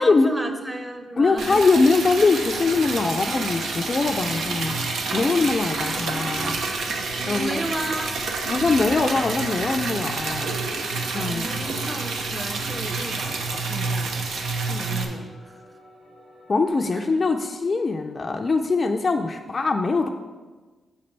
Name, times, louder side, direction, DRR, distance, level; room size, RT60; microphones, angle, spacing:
voice 1, 0.0-1.6 5.6-6.8 7.2-8.1 11.1-14.1 14.6-15.6 16.9-17.0, right 1 dB, 15° right, 6 dB, 0.9 m, -33 dB
voice 2, 1.2-4.8 5.1-6.6 7.3-7.6 8.5-10.5 11.1-11.7 16.5-20.1, left 3 dB, 40° left, 4 dB, 0.4 m, -22 dB
Liquid, 1.4-15.0, right 3 dB, 85° right, 0.8 m, -28 dB
sound 1, 4.3-16.7, left 1 dB, 45° right, 1.7 m, -49 dB
7.2 x 4.3 x 5.3 m, 1.4 s
cardioid pair, 75°, 0 cm